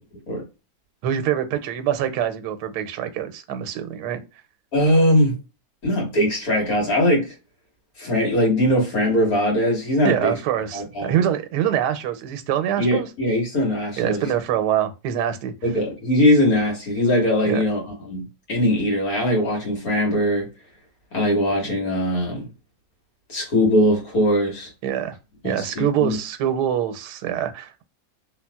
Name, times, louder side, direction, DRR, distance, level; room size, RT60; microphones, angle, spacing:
voice 1, 1.0-4.2 10.0-13.1 14.0-15.5 17.4-17.6 24.8-25.2 25.4-27.8, right 10 dB, 90° right, 1.2 m, -24 dB
voice 2, 4.7-5.4 5.8-7.3 8.0-10.4 10.7-11.2 12.8-14.3 15.6-20.5 21.1-22.5 23.3-24.7 25.4-26.2, left 1 dB, 60° left, 1.8 m, -21 dB
3.3 x 2.6 x 2.2 m
omnidirectional pair, 1.7 m